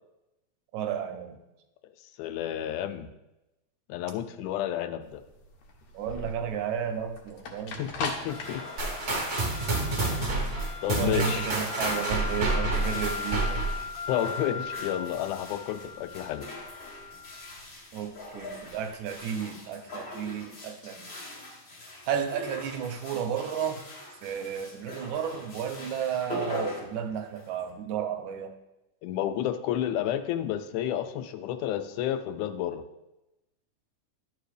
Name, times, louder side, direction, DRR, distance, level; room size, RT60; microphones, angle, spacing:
voice 1, 0.7-1.4 5.9-7.8 11.0-13.6 17.9-21.1 22.1-23.8 24.2-28.5, right 8 dB, 80° right, 6 dB, 2.0 m, -33 dB
voice 2, 2.2-3.1 3.9-5.2 7.8-8.6 10.0-10.4 10.8-11.5 14.1-16.5 29.0-32.8, left 11 dB, 85° left, 10 dB, 2.0 m, -31 dB
sound 1, 5.0-19.1, left 5 dB, 70° left, 1.9 m, -39 dB
sound 2, 8.1-27.7, left 1 dB, 40° left, 1.5 m, -43 dB
sound 3, 8.8-13.9, right 2 dB, 65° right, 0.7 m, -29 dB
10.5 x 4.8 x 3.3 m, 0.95 s
omnidirectional pair, 3.5 m